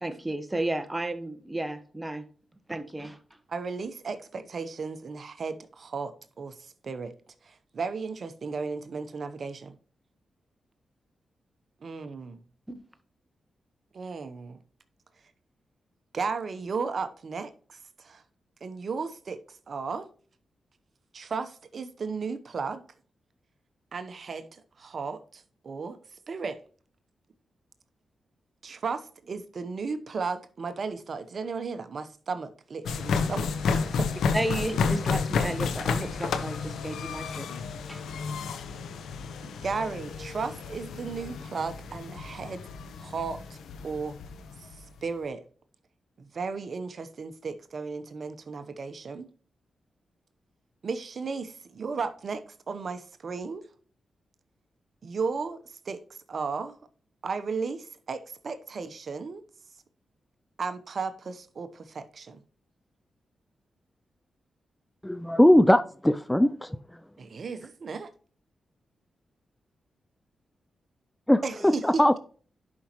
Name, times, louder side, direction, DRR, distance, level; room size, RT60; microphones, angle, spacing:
voice 1, 0.0-2.3 2.7-3.2 12.7-12.8 34.3-37.5 37.9-38.2, right 1 dB, 15° right, 1.3 m, -33 dB
voice 2, 3.5-7.1 7.4-9.7 11.8-12.4 13.9-14.6 16.1-18.2 18.6-20.1 21.1-22.8 23.9-26.0 26.3-26.6 28.6-33.5 33.7-34.1 39.4-42.6 43.0-43.6 43.8-44.1 44.6-45.4 46.2-49.3 50.8-53.6 55.0-56.0 56.3-56.8 57.2-59.4 60.6-62.4 67.2-68.1 71.4-72.0, right 4 dB, 60° right, 0.9 m, -35 dB
sound 1, 32.8-44.9, left 5 dB, 85° left, 0.8 m, -31 dB
voice 3, 65.0-67.0 71.3-72.2, left 1 dB, 10° left, 0.4 m, -21 dB
11.0 x 5.3 x 3.0 m
cardioid pair, 60°, 0 cm